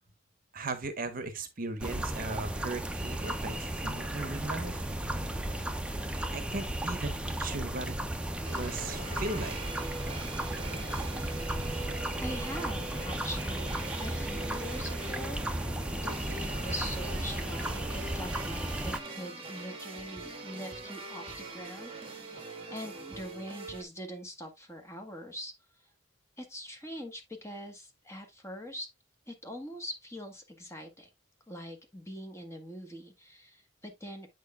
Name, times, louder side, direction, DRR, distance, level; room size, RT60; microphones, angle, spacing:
voice 1, 0.5-4.8 6.3-8.0 8.5-9.6, right 2 dB, 45° right, 1.1 m, -37 dB
sound 1, 1.8-19.0, right 1 dB, 5° right, 0.7 m, -34 dB
sound 2, 8.4-23.8, right 3 dB, 25° right, 1.7 m, -43 dB
voice 2, 12.2-15.4 15.9-25.5 26.4-28.9 29.3-31.1 31.5-34.3, equal, 15° left, 1.6 m, -43 dB
8.2 x 6.5 x 2.4 m
head